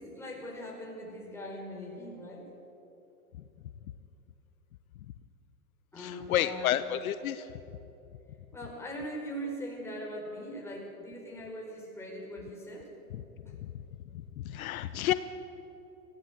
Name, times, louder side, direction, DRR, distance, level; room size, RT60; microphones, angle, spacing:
voice 1, 0.0-2.5 5.9-6.8 8.5-12.9 13.5-13.6, equal, 5° left, -2 dB, 5.1 m, -41 dB
voice 2, 6.0-7.5 13.6-13.7 14.1-15.1, left 12 dB, 70° left, 12 dB, 0.9 m, -30 dB
21.5 x 15.5 x 7.9 m, 3.0 s
hypercardioid pair, 125°, 44 cm